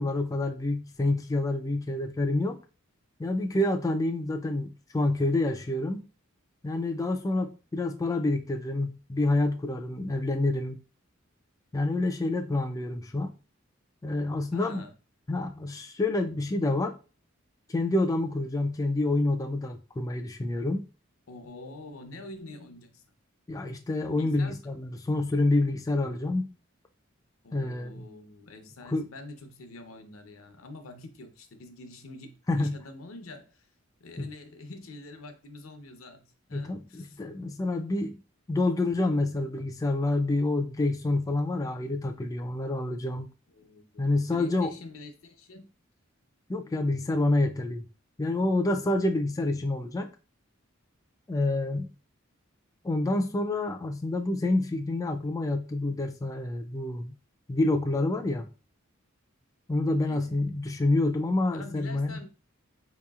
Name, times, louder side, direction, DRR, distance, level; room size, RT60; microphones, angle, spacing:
voice 1, 0.0-2.6 3.2-6.0 6.6-10.8 11.7-13.3 14.0-14.8 15.3-17.0 17.7-20.9 23.5-26.5 27.5-28.0 28.8-29.1 32.5-32.8 34.2-34.3 36.5-38.2 38.5-43.3 44.0-44.7 46.5-47.8 48.2-50.1 51.3-51.9 52.8-57.1 57.5-58.5 59.7-62.2, left 2 dB, 15° left, 0.3 m, -28 dB
voice 2, 14.5-14.9 21.3-23.0 24.1-24.6 27.4-33.7 34.0-37.2 39.1-39.2 43.5-45.7 60.1-60.4 61.5-62.3, left 2 dB, 85° left, 0.7 m, -46 dB
4.6 x 2.9 x 2.3 m
head